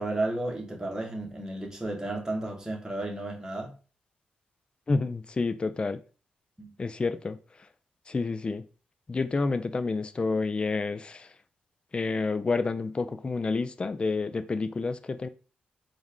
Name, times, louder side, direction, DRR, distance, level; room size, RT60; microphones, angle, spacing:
voice 1, 0.0-3.7 6.6-6.7, right 2 dB, 15° right, 1.3 m, -33 dB
voice 2, 4.9-6.0 6.8-7.4 8.1-8.7 9.1-11.3 11.9-15.3, left 3 dB, 30° left, 0.4 m, -29 dB
4.0 x 2.5 x 3.6 m
cardioid pair, 80°, 3 cm